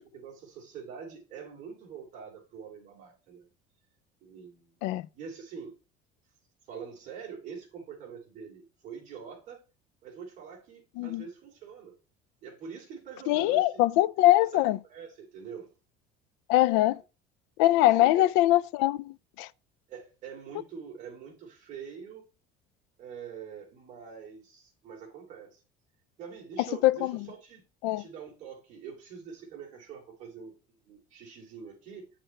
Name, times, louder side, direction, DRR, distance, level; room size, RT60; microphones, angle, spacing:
voice 1, 0.0-3.5 4.2-4.7 5.1-5.7 6.7-9.6 10.0-12.0 12.4-13.8 14.5-15.7 17.8-18.3 19.9-22.2 23.0-25.6 26.2-27.7 28.0-32.1, right 6 dB, 40° right, 3.0 m, -45 dB
voice 2, 13.3-14.8 16.5-17.0 17.6-19.5 26.8-27.3 27.8-28.0, left 15 dB, 70° left, 0.5 m, -23 dB
8.9 x 6.6 x 3.3 m
cardioid pair, 175°, 19 cm